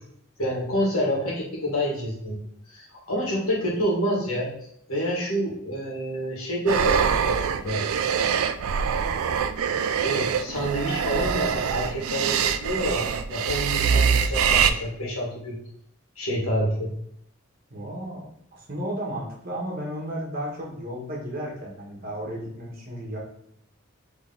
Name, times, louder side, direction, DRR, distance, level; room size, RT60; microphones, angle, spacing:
voice 1, 0.4-2.4 2.7-4.5 4.9-7.8 10.0-15.6 16.2-16.9, equal, 85° left, -4 dB, 1.8 m, -28 dB
sound 1, 6.7-14.7, right 7 dB, 85° right, 0.4 m, -24 dB
voice 2, 17.7-18.2 18.5-23.2, equal, 40° right, -2 dB, 1.3 m, -33 dB
3.8 x 3.5 x 3.9 m, 0.71 s
head